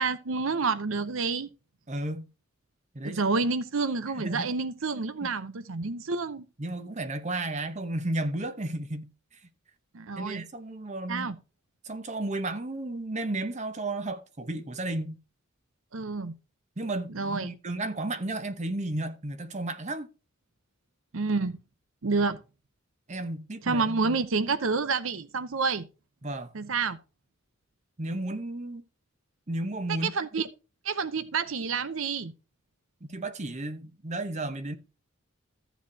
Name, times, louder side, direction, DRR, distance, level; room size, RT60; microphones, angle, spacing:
voice 1, 0.0-1.5 3.0-6.4 9.9-10.4 11.1-11.4 15.9-16.3 17.1-17.5 21.1-21.6 22.0-22.4 23.6-25.9 26.5-27.0 29.9-30.5 30.8-32.3, right 4 dB, 70° right, 0.7 m, -29 dB
voice 2, 1.9-2.3 2.9-3.2 4.1-4.5 4.9-5.3 6.6-9.4 10.2-11.3 11.8-15.2 16.8-20.1 23.1-24.2 26.2-26.5 28.0-28.8 29.5-30.1 33.0-34.8, right 2 dB, 35° right, 0.9 m, -33 dB
14.5 x 7.2 x 2.8 m
head